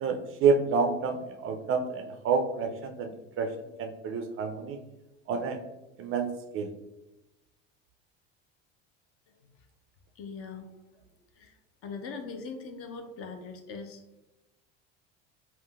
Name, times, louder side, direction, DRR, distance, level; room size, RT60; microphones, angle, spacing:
voice 1, 0.0-1.2 1.4-3.1 3.4-3.5 3.8-4.8 5.3-5.6 6.0-6.3 6.5-6.7, right 5 dB, 40° right, 5 dB, 0.4 m, -28 dB
voice 2, 10.2-10.7 11.4-11.5 11.8-14.2, left 4 dB, 45° left, 5 dB, 0.5 m, -41 dB
3.7 x 2.2 x 2.3 m, 0.99 s
hypercardioid pair, 85°, 33 cm